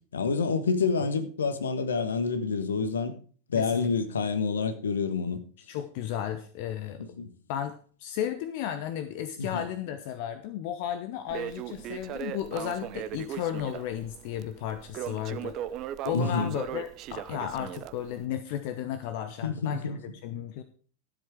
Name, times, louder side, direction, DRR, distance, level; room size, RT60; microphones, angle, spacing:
voice 1, 0.1-3.1 3.5-5.4 7.0-7.3 9.4-9.6 16.1-16.5 19.4-20.0, left 5 dB, 70° left, 1.5 m, -28 dB
voice 2, 3.5-3.9 5.7-7.0 7.5-15.6 16.0-20.6, left 10 dB, 45° left, 0.9 m, -34 dB
Crackle, 11.3-18.3, right 12 dB, 35° right, 0.7 m, -38 dB
13.0 x 7.9 x 4.9 m
figure-of-eight pair, 90°, 0 cm